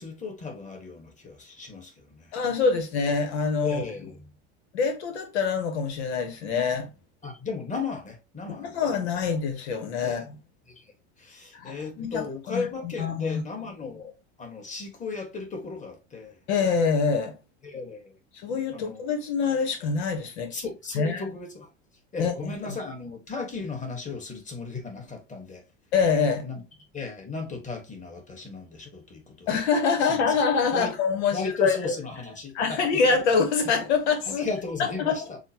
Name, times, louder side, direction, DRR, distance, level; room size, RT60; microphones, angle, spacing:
voice 1, 0.0-2.3 3.6-4.3 7.2-8.8 10.0-10.2 10.7-14.1 14.4-16.4 17.6-18.1 18.7-19.0 20.5-21.7 22.1-25.6 26.4-26.6 26.9-29.5 30.0-30.3 30.7-30.9 31.3-32.9 34.3-35.4, left 4 dB, 25° left, 1.5 m, -35 dB
voice 2, 2.3-3.8 4.7-6.9 8.5-10.2 11.5-12.7 13.0-13.4 16.5-17.4 18.3-20.6 20.9-21.2 22.2-22.3 25.9-26.4 29.5-31.9 32.5-34.5 34.8-35.2, left 5 dB, 85° left, 1.0 m, -25 dB
6.3 x 2.1 x 2.8 m
supercardioid pair, 100°, 33 cm